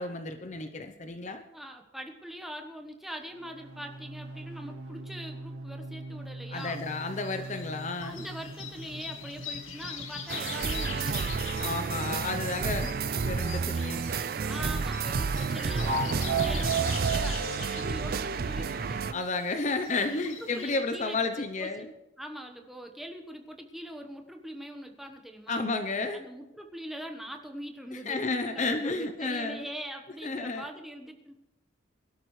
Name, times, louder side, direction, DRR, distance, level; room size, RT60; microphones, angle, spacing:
voice 1, 0.0-1.4 6.5-8.2 11.6-12.9 13.2-14.0 19.1-21.9 25.5-26.2 27.9-29.7 30.2-30.7, left 3 dB, 35° left, 7 dB, 0.7 m, -32 dB
voice 2, 1.5-6.8 8.0-11.3 14.4-19.0 20.1-21.5 21.8-21.9 22.2-25.7 26.1-31.3, equal, ahead, 3 dB, 1.1 m, -42 dB
sound 1, 3.3-13.5 15.7-19.3, right 4 dB, 85° right, 2.0 m, -38 dB
sound 2, 6.6-20.8, left 6 dB, 85° left, 1.9 m, -43 dB
sound 3, 10.3-19.1, right 5 dB, 45° right, 0.4 m, -30 dB
22.5 x 12.0 x 3.2 m, 0.99 s
head